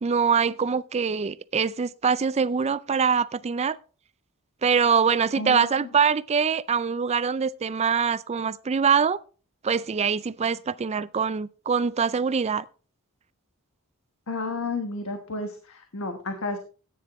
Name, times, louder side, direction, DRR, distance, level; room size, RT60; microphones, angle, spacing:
voice 1, 0.0-3.8 4.6-9.2 9.6-12.7, right 6 dB, 30° right, 0.4 m, -24 dB
voice 2, 5.4-5.8 14.3-16.6, left 3 dB, 65° left, 1.3 m, -31 dB
14.0 x 9.4 x 3.1 m
head